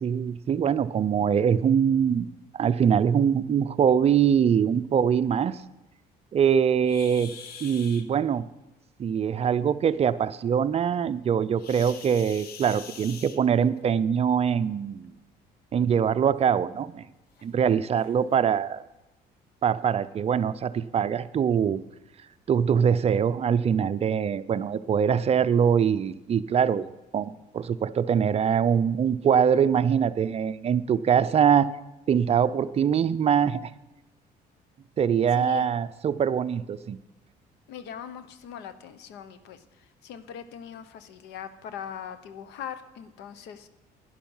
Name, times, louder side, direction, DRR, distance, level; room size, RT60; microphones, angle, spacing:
voice 1, 0.0-5.6 6.3-7.3 7.6-8.4 9.0-15.1 15.7-17.1 17.4-18.8 19.6-21.8 22.5-31.7 32.1-33.7 35.0-37.0, right 7 dB, 40° right, 14 dB, 0.5 m, -23 dB
sound 1, 6.8-8.0 11.6-13.8 15.0-15.2 15.8-15.9 16.5-16.6 17.4-17.5 17.9-18.1, left 6 dB, 65° left, 1.2 m, -44 dB
voice 2, 35.3-35.7 37.7-43.7, left 9 dB, 85° left, 12 dB, 1.0 m, -40 dB
11.5 x 10.5 x 5.5 m, 0.99 s
cardioid pair, 110°, 17 cm